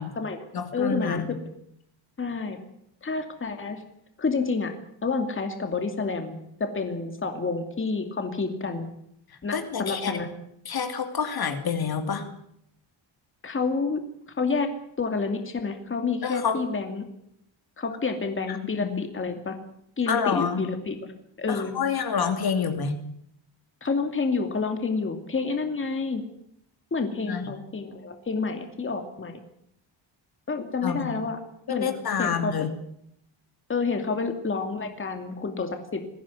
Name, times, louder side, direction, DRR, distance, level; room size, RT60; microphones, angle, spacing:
voice 1, 0.0-0.4 0.7-1.4 2.2-2.6 3.0-3.8 4.2-4.7 5.0-8.9 9.4-10.3 13.4-14.0 14.4-14.7 15.0-17.0 17.8-19.6 20.0-21.1 21.4-21.7 23.8-26.2 26.9-29.4 30.5-31.4 31.7-31.9 32.2-32.5 33.7-36.0, left 4 dB, 25° left, 5 dB, 2.6 m, -29 dB
voice 2, 0.5-1.3 9.5-10.2 10.7-12.3 16.2-16.6 18.5-19.0 20.1-20.6 21.5-22.9 27.2-27.5 30.8-31.2 31.7-32.7, left 6 dB, 50° left, 7 dB, 2.7 m, -28 dB
22.0 x 16.0 x 9.8 m, 0.73 s
wide cardioid pair, 175°, 48 cm